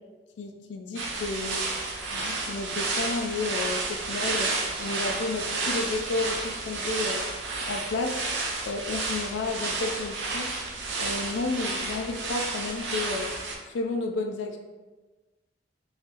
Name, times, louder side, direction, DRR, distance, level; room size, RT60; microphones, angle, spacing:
voice 1, 0.4-1.6 2.1-7.3 7.7-8.2 8.7-10.5 11.0-13.3 13.7-14.6, left 3 dB, 75° left, 3 dB, 0.3 m, -32 dB
sound 1, 1.0-13.6, right 3 dB, 90° right, 0.6 m, -31 dB
2.8 x 2.7 x 3.6 m, 1.2 s
head